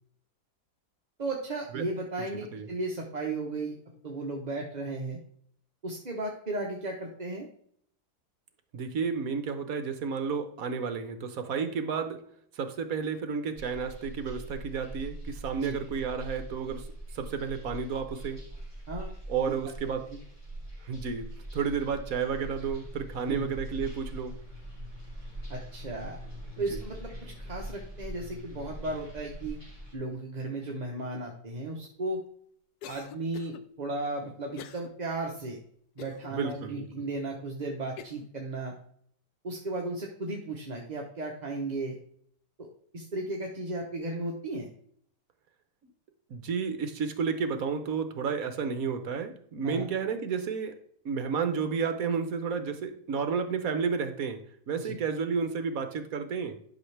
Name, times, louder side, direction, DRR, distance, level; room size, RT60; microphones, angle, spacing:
voice 1, 1.2-3.8 4.0-5.2 5.8-7.5 15.5-15.8 18.9-19.1 19.4-19.6 19.9-20.2 23.3-23.5 25.5-26.2 26.6-29.6 29.9-32.2 32.9-35.6 36.0-38.8 39.4-42.0 42.6-42.7 42.9-44.7 49.6-49.9 54.8-55.0, right 2 dB, 30° right, 0 dB, 1.0 m, -35 dB
voice 2, 8.7-12.2 12.5-16.9 17.1-18.4 19.3-20.0 20.8-24.3 26.7-26.8 36.3-36.9 46.3-50.8 51.0-54.4 54.7-56.5, right 6 dB, 60° right, 8 dB, 1.3 m, -31 dB
sound 1, 13.6-29.9, right 1 dB, 15° left, 3.5 m, -42 dB
Cough, 32.8-33.6 34.6-34.9 35.3-35.4 36.0-36.6 37.2-37.3 38.0-38.3, left 8 dB, 75° left, 1.2 m, -45 dB
11.0 x 6.0 x 3.3 m, 0.63 s
omnidirectional pair, 1.8 m